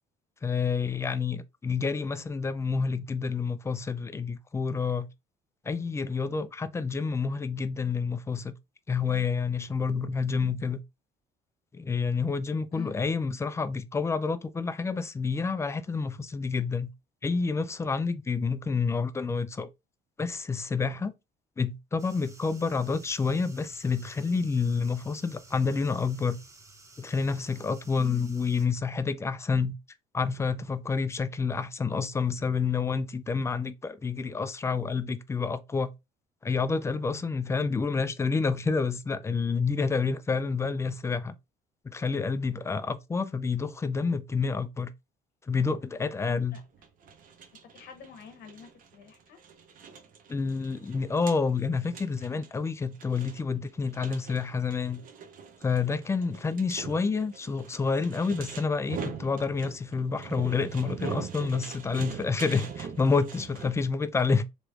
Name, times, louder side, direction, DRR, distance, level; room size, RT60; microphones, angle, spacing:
voice 1, 0.4-5.1 5.7-8.5 8.9-10.8 11.7-16.9 17.2-19.7 20.2-21.1 21.6-26.4 27.0-29.8 30.1-35.9 36.4-41.3 41.8-44.9 45.5-46.6 50.3-55.0 55.6-64.4, left 5 dB, 15° left, 0.3 m, -29 dB
voice 2, 12.7-13.0 28.0-28.3 46.3-46.6 47.6-49.4 63.6-63.8, left 6 dB, 70° left, 0.9 m, -46 dB
sound 1, 22.0-28.7, right 3 dB, 20° right, 0.7 m, -53 dB
sound 2, 46.5-63.8, right 6 dB, 55° right, 0.7 m, -42 dB
3.1 x 3.0 x 2.3 m
cardioid pair, 110°, 17 cm